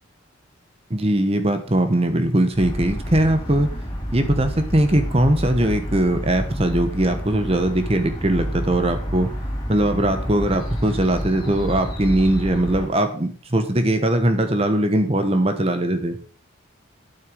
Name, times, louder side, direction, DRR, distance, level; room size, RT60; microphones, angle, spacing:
voice 1, 0.9-3.7 4.1-9.3 9.7-16.2, right 1 dB, 30° right, 7 dB, 1.1 m, -20 dB
sound 1, 2.5-12.9, equal, 20° left, 3.7 m, -29 dB
9.1 x 7.6 x 5.1 m, 0.41 s
head